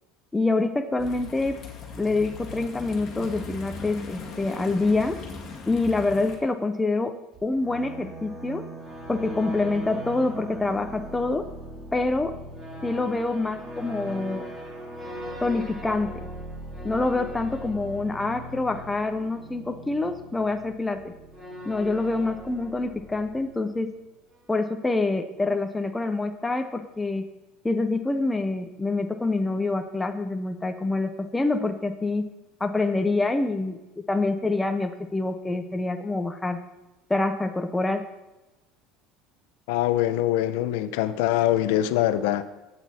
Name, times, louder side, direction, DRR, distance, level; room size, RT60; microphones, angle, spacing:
voice 1, 0.3-1.6 2.0-5.2 5.7-7.2 7.4-8.7 9.1-11.5 11.9-12.4 12.8-14.5 15.4-16.3 16.8-21.1 21.7-23.9 24.5-27.3 27.6-32.3 32.6-36.6 37.1-38.0, left 3 dB, 10° left, 6 dB, 0.5 m, -26 dB
sound 1, 1.0-6.4, left 4 dB, 30° left, 2.1 m, -39 dB
sound 2, 7.3-24.0, right 1 dB, 15° right, 1.9 m, -40 dB
voice 2, 39.7-42.4, left 13 dB, 80° left, 13 dB, 0.6 m, -23 dB
12.0 x 8.2 x 4.2 m, 1.0 s
cardioid pair, 165°, 0 cm